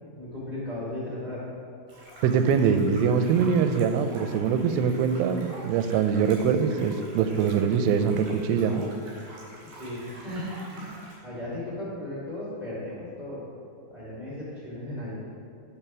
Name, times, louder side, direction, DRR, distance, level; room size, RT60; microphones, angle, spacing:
voice 1, 0.1-1.4 9.6-13.4 13.9-15.2, left 1 dB, 15° left, -8 dB, 1.4 m, -36 dB
sound 1, 1.9-11.1, right 1 dB, 65° right, 3.8 m, -46 dB
voice 2, 2.2-8.8, right 6 dB, 90° right, 8 dB, 2.4 m, -23 dB
8.8 x 4.6 x 6.0 m, 2.4 s
omnidirectional pair, 4.2 m